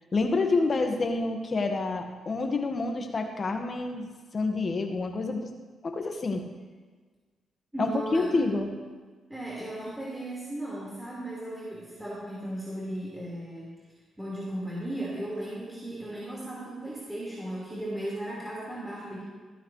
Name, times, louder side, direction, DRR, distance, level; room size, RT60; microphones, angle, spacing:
voice 1, 0.1-5.5 5.8-6.4 7.8-8.7, left 3 dB, 45° left, 4 dB, 1.7 m, -28 dB
voice 2, 7.7-8.5 9.3-13.7 14.2-19.2, right 1 dB, 10° right, -7 dB, 4.6 m, -36 dB
15.5 x 12.0 x 3.3 m, 1.4 s
supercardioid pair, 55°, 0 cm